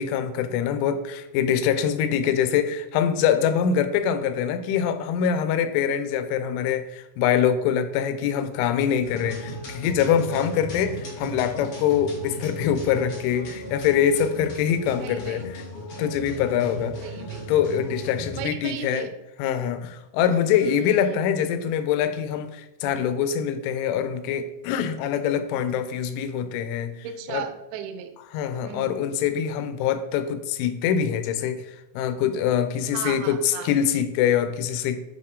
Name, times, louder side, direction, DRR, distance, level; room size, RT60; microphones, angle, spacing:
voice 1, 0.0-15.6 16.0-17.0 17.5-19.1 19.4-27.5 28.3-35.0, left 8 dB, 85° left, 10 dB, 3.0 m, -24 dB
sound 1, 9.0-18.4, equal, 60° left, 1.5 m, -37 dB
voice 2, 15.0-15.4 17.0-17.5 18.2-19.1 20.6-21.2 27.0-28.1 28.6-29.0 32.9-33.7, right 9 dB, 85° right, 7 dB, 2.6 m, -36 dB
7.7 x 4.3 x 3.6 m, 0.97 s
omnidirectional pair, 5.5 m